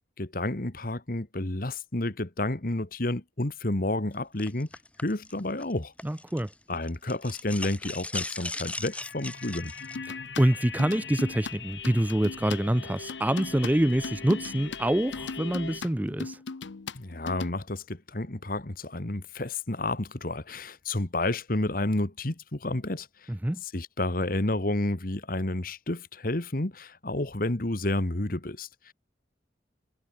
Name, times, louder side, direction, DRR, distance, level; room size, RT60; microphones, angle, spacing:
voice 1, 0.2-4.7 5.0-5.9 6.7-9.7 16.9-23.3 23.6-28.9, left 2 dB, 50° left, 1.6 m, -30 dB
sound 1, 4.4-6.5 6.8-10.0, left 2 dB, 5° left, 1.0 m, -38 dB
voice 2, 6.0-6.5 10.1-16.4 23.3-23.6, right 1 dB, 10° right, 0.5 m, -26 dB
sound 2, 8.9-15.8, left 6 dB, 75° left, 3.6 m, -41 dB
sound 3, 9.8-12.6 13.0-17.5, left 4 dB, 90° left, 0.8 m, -38 dB
head